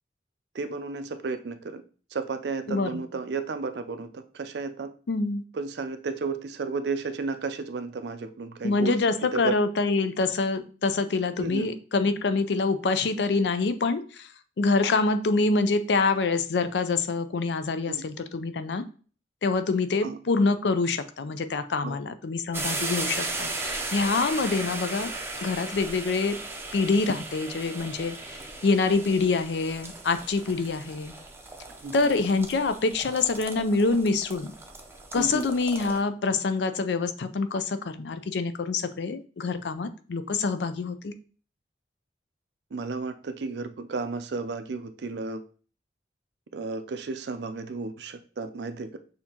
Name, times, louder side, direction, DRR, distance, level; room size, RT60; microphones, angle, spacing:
voice 1, 0.5-1.8 2.1-4.9 5.5-9.5 11.4-11.7 17.9-18.0 20.0-20.2 21.8-22.0 31.8-31.9 35.1-35.4 42.7-45.4 46.5-49.0, right 4 dB, 65° right, 9 dB, 0.4 m, -33 dB
voice 2, 2.7-3.0 5.1-5.4 8.6-14.3 14.6-18.8 19.4-25.1 25.4-26.4 26.7-28.1 28.6-31.1 31.9-34.5 35.1-41.1, left 3 dB, 70° left, 10 dB, 0.5 m, -26 dB
sound 1, 22.5-36.0, right 2 dB, 15° right, 0.5 m, -36 dB
6.4 x 2.8 x 2.8 m, 0.40 s
head